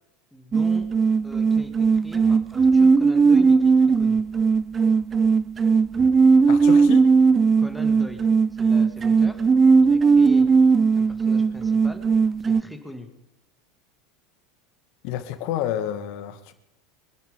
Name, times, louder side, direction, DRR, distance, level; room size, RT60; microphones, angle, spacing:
voice 1, 0.3-0.9 1.2-4.2 7.6-9.5 9.8-10.5 11.0-12.0 12.4-13.1, left 1 dB, 5° left, 5 dB, 2.4 m, -41 dB
sound 1, 0.5-12.6, right 5 dB, 25° right, 0.5 m, -18 dB
voice 2, 6.5-7.1 15.0-16.5, left 11 dB, 60° left, 10 dB, 1.8 m, -29 dB
25.0 x 10.5 x 5.3 m, 0.86 s
hypercardioid pair, 85°, 0 cm